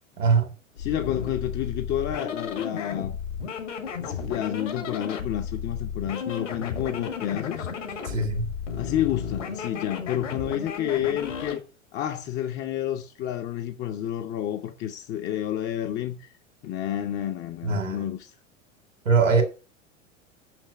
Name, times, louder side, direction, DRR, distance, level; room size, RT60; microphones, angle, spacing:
voice 1, 0.2-0.5 8.0-8.5 17.6-18.1 19.1-19.4, right 4 dB, 75° right, 2.0 m, -22 dB
sound 1, 0.7-11.6, left 6 dB, 70° left, 1.8 m, -34 dB
voice 2, 0.8-3.2 4.1-8.0 8.8-11.6 11.9-16.3 16.6-18.3, left 11 dB, 30° left, 0.7 m, -30 dB
6.3 x 6.0 x 6.7 m
figure-of-eight pair, 85°, 39 cm